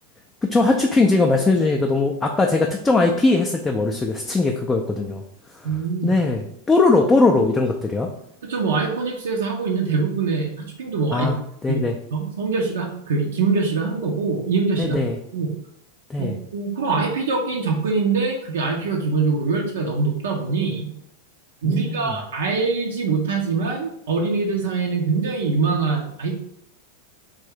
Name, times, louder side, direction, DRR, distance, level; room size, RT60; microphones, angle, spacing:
voice 1, 0.4-5.2 6.0-8.1 11.1-11.4 11.6-11.9 14.8-15.2 16.1-16.4 21.6-22.2, left 3 dB, 10° left, 2 dB, 0.3 m, -20 dB
voice 2, 5.6-6.1 8.4-10.5 10.8-11.3 11.7-11.8 12.1-15.0 15.3-15.5 16.2-20.9 21.6-26.3, right 4 dB, 60° right, -1 dB, 0.5 m, -23 dB
3.4 x 2.6 x 3.4 m, 0.73 s
figure-of-eight pair, 90°, 0 cm